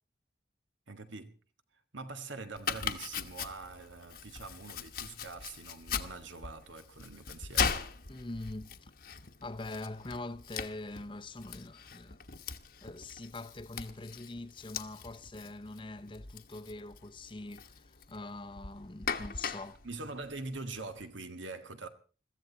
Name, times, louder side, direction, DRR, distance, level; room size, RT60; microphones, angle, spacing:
voice 1, 0.9-1.4 1.9-7.7 19.8-21.9, right 3 dB, 85° right, 1.8 m, -44 dB
Domestic sounds home sounds, 2.6-21.0, left 6 dB, 50° left, 1.2 m, -40 dB
voice 2, 8.1-8.9 9.4-12.2 12.8-19.8, left 2 dB, 25° left, 0.7 m, -43 dB
22.5 x 14.5 x 4.1 m
head